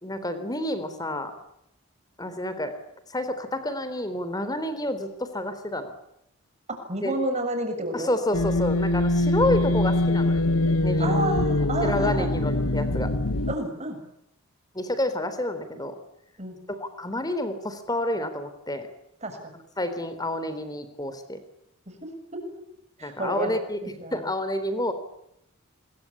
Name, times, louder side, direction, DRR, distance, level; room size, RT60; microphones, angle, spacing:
voice 1, 0.0-1.4 2.2-2.8 3.1-5.9 7.0-7.1 7.9-10.4 10.8-11.2 11.8-13.1 14.7-16.0 16.7-18.9 19.8-21.4 23.0-24.9, left 1 dB, 15° left, 11 dB, 3.7 m, -29 dB
voice 2, 6.7-8.1 11.0-12.3 13.5-14.0 16.4-16.6 19.2-19.5 21.9-22.0 22.3-22.4 23.0-23.5 23.8-24.2, right 1 dB, 30° right, 6 dB, 6.8 m, -30 dB
sound 1, 8.3-13.5, left 2 dB, 75° left, 1.5 m, -23 dB
26.5 x 22.5 x 8.6 m, 0.78 s
head